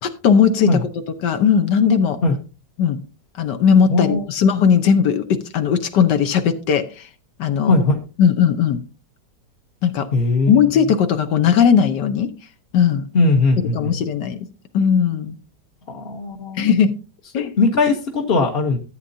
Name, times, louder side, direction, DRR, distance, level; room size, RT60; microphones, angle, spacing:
voice 1, 0.0-0.9 1.2-2.2 2.8-3.0 3.4-7.1 7.4-7.8 8.2-8.8 9.8-10.1 10.5-12.3 12.7-13.0 13.7-14.5 14.7-15.4 16.6-16.9 17.3-17.5, left 7 dB, 70° left, 8 dB, 1.5 m, -17 dB
voice 2, 3.9-4.2 7.7-8.0 10.1-10.5 13.1-13.9 15.9-16.7 17.4-18.8, left 3 dB, 40° left, 2 dB, 1.0 m, -19 dB
14.0 x 8.3 x 2.7 m, 0.33 s
omnidirectional pair, 1.9 m